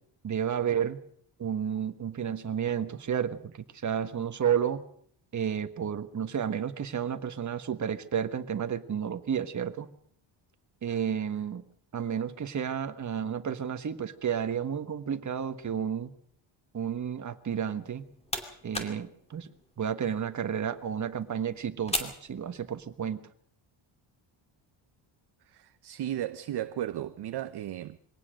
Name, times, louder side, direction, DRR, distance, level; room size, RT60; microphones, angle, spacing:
voice 1, 0.2-1.0 1.4-4.8 5.3-9.9 10.8-11.6 11.9-16.1 16.7-18.0 18.6-19.5 19.8-23.2, right 8 dB, 35° right, 1.4 m, -31 dB
sound 1, 17.8-23.1, left 1 dB, 10° left, 2.7 m, -40 dB
voice 2, 25.5-28.0, right 12 dB, 50° right, 0.7 m, -35 dB
23.0 x 18.0 x 6.4 m
cardioid pair, 145°, 50 cm